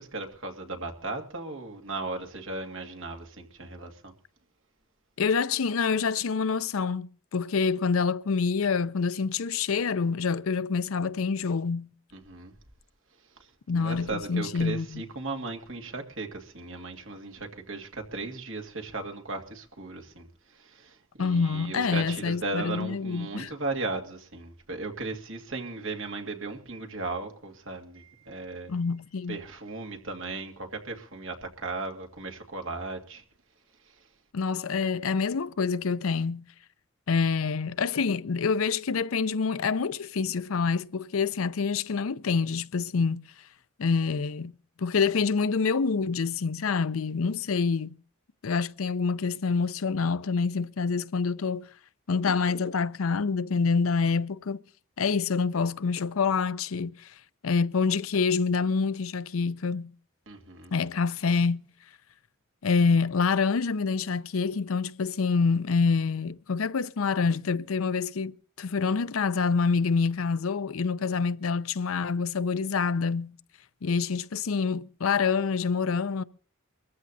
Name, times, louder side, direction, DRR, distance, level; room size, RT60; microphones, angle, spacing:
voice 1, 0.0-4.1 12.1-12.5 13.2-28.8 29.3-33.2 33.8-34.1 60.3-60.7, right 3 dB, 70° right, 2.1 m, -36 dB
voice 2, 5.2-11.9 13.7-15.0 21.2-23.5 28.7-29.4 34.3-36.5 37.1-43.2 43.8-48.0 48.4-51.7 52.1-54.6 55.0-57.1 57.4-59.9 60.7-61.7 62.6-73.3 73.8-76.2, left 5 dB, 85° left, 0.6 m, -27 dB
23.5 x 14.5 x 2.7 m
head